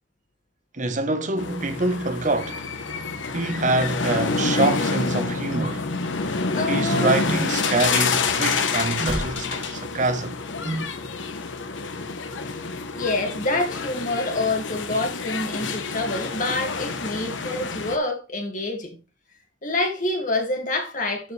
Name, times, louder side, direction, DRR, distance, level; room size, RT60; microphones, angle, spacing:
voice 1, 0.7-2.6 3.3-5.9 6.7-10.4, right 2 dB, 40° right, 1.0 m, -25 dB
sound 1, 1.4-18.0, left 4 dB, 75° left, 1.0 m, -28 dB
sound 2, 5.5-5.8 7.2-7.6 9.0-9.3 10.6-10.9, right 2 dB, 15° right, 0.4 m, -29 dB
sound 3, 5.8-10.4 11.1-11.4 11.8-11.9, right 1 dB, 90° right, 3.4 m, -39 dB
voice 2, 6.5-7.1 12.9-19.0 19.6-21.3, left 2 dB, 40° left, 2.1 m, -27 dB
11.0 x 5.0 x 3.3 m
head